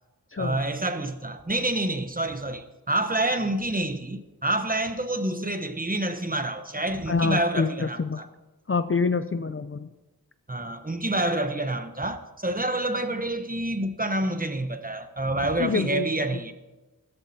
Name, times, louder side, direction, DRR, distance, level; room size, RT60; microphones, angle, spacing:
voice 1, 0.4-8.3 10.5-16.5, right 1 dB, 25° right, 1.0 m, -28 dB
voice 2, 7.1-8.2 8.7-9.9 15.6-16.1, left 4 dB, 35° left, 0.5 m, -26 dB
16.0 x 13.5 x 2.8 m
wide cardioid pair, 55°, 36 cm